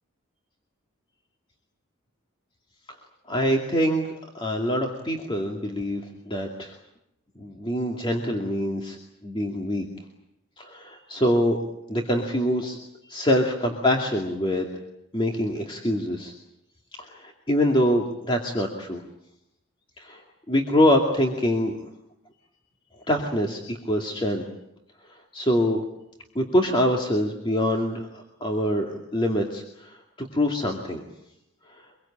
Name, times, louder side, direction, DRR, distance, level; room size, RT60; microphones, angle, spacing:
voice 1, 3.3-4.1 4.3-6.7 7.4-9.0 9.2-9.8 10.6-11.6 11.9-12.8 13.1-14.7 15.1-16.3 17.0-19.0 20.0-20.2 20.5-21.8 23.1-24.4 25.3-25.8 26.3-31.0, equal, 25° left, 1 dB, 2.4 m, -24 dB
25.0 x 23.0 x 8.8 m, 0.80 s
head